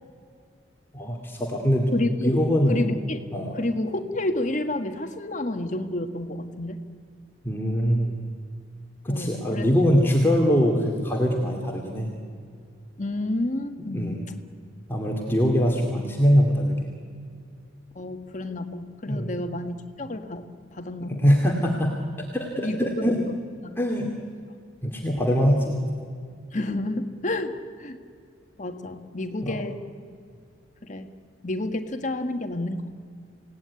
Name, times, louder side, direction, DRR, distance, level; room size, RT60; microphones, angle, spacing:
voice 1, 0.9-1.9 2.2-2.9 3.3-3.6 7.4-8.2 9.0-12.1 13.9-14.3 14.9-16.8 19.1-19.3 21.0-22.0 22.3-23.2 23.8-24.1 24.8-25.8 29.4-29.6, equal, 10° left, -1 dB, 2.4 m, -22 dB
voice 2, 1.9-2.4 2.7-3.2 3.5-6.8 9.1-9.8 10.7-10.8 13.0-14.4 17.9-21.2 22.6-23.2 23.6-23.7 26.5-28.0 28.6-29.8 30.8-31.1 31.4-32.9, left 1 dB, 40° left, 7 dB, 1.6 m, -30 dB
27.5 x 18.0 x 9.7 m, 2.3 s
head